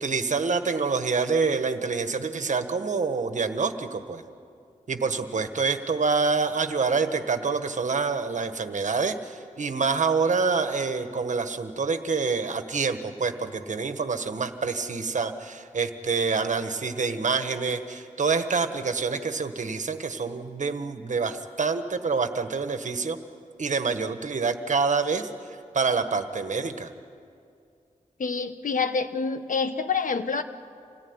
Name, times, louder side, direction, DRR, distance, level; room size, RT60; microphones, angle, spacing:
voice 1, 0.0-4.2 4.9-23.2 23.6-25.3 25.7-26.9, right 4 dB, 60° right, 8 dB, 1.5 m, -27 dB
voice 2, 28.2-30.4, left 5 dB, 70° left, 9 dB, 1.2 m, -27 dB
27.0 x 18.5 x 9.8 m, 2.4 s
wide cardioid pair, 95°, 14 cm